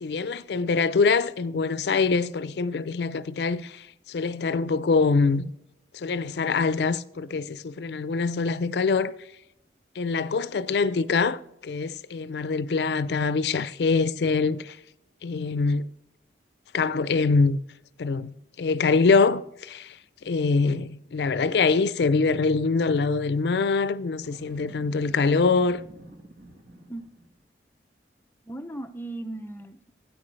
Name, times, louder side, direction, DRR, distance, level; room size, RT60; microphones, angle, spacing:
voice 1, 0.0-5.5 5.9-9.1 10.0-14.8 15.2-15.8 16.7-17.6 18.0-19.9 20.2-25.8, left 4 dB, 65° left, 0.4 m, -24 dB
Boom, 24.2-27.4, right 1 dB, 50° right, 1.3 m, -48 dB
voice 2, 26.9-27.2 28.4-29.9, right 1 dB, 10° left, 0.5 m, -37 dB
9.2 x 8.7 x 3.2 m
head